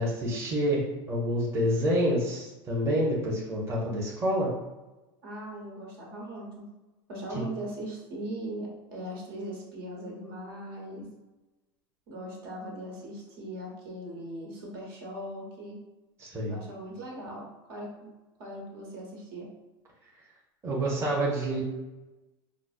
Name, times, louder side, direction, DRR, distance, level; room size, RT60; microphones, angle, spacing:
voice 1, 0.0-4.5 16.2-16.6 20.6-21.6, equal, 20° right, -4 dB, 0.8 m, -28 dB
voice 2, 5.2-6.6 7.1-11.1 12.1-15.8 16.5-18.1 18.4-19.5, right 1 dB, 70° right, -3 dB, 1.4 m, -39 dB
5.0 x 2.0 x 2.5 m, 1.1 s
supercardioid pair, 125°, 13 cm